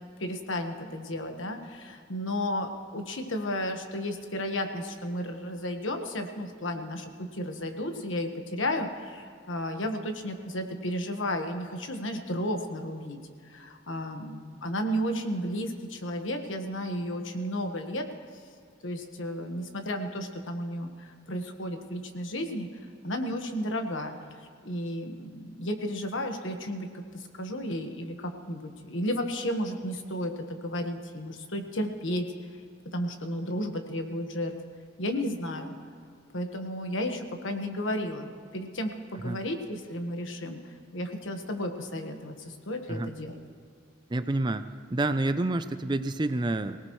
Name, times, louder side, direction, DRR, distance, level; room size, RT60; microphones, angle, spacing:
voice 1, 0.2-13.2 13.4-18.1 18.8-22.7 23.0-26.9 27.1-32.3 32.9-34.6 35.0-35.7 36.3-43.4, equal, 80° left, 5 dB, 1.4 m, -33 dB
voice 2, 44.1-46.8, right 2 dB, 25° right, 11 dB, 0.5 m, -28 dB
23.5 x 18.0 x 3.2 m, 2.1 s
head